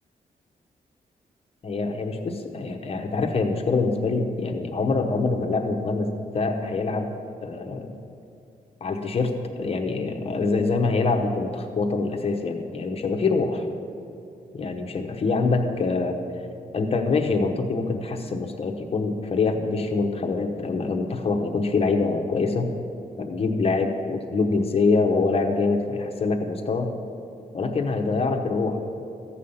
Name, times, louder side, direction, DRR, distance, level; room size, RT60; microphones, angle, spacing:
voice 1, 1.6-7.1 7.4-7.9 8.8-13.6 14.5-16.2 16.7-22.7 23.2-26.9 27.5-28.8, left 3 dB, 40° left, 4 dB, 1.0 m, -25 dB
15.0 x 8.5 x 5.5 m, 2.7 s
wide cardioid pair, 165°, 15 cm